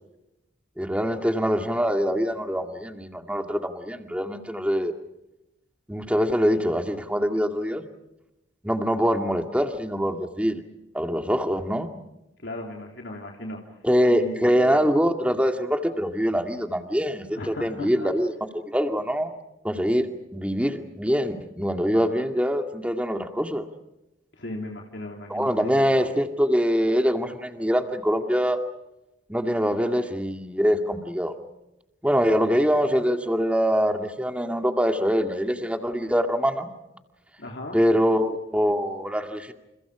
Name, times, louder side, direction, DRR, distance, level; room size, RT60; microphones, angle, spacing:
voice 1, 0.8-4.9 5.9-7.9 8.6-10.6 10.9-11.9 13.8-19.3 19.6-20.1 20.3-23.7 25.3-28.6 29.3-31.3 32.0-36.7 37.7-39.5, equal, 5° right, 5 dB, 2.2 m, -24 dB
voice 2, 12.4-13.6 14.1-14.8 17.4-18.1 24.4-25.8 37.4-37.8, left 1 dB, 65° left, 0 dB, 3.5 m, -36 dB
29.5 x 29.0 x 5.0 m, 0.91 s
head